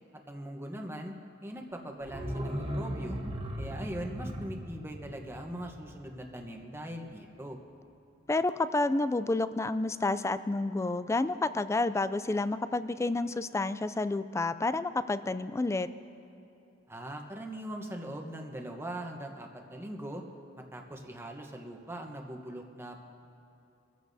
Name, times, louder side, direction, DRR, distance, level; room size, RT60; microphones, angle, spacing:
voice 1, 0.3-1.1 1.4-3.2 3.6-7.6 16.9-20.2 20.6-23.0, right 1 dB, 15° right, 2 dB, 1.0 m, -41 dB
sound 1, 2.0-6.8 7.1-7.2, equal, 30° right, 1.3 m, -38 dB
voice 2, 8.3-15.9, left 2 dB, 15° left, 13 dB, 0.3 m, -29 dB
24.5 x 14.5 x 2.7 m, 2.9 s
head